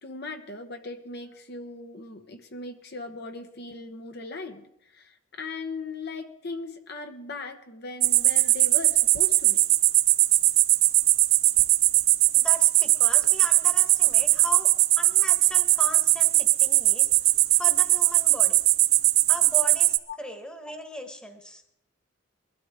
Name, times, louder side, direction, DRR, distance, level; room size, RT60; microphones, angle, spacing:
voice 1, 0.0-9.6 20.1-20.2, left 3 dB, 50° left, 5 dB, 1.2 m, -38 dB
sound 1, 8.0-20.0, right 17 dB, 85° right, 0.6 m, -20 dB
voice 2, 12.3-14.7 15.0-17.1 17.5-18.6 19.3-21.6, equal, 5° left, 5 dB, 1.4 m, -38 dB
22.0 x 12.5 x 3.7 m, 0.81 s
head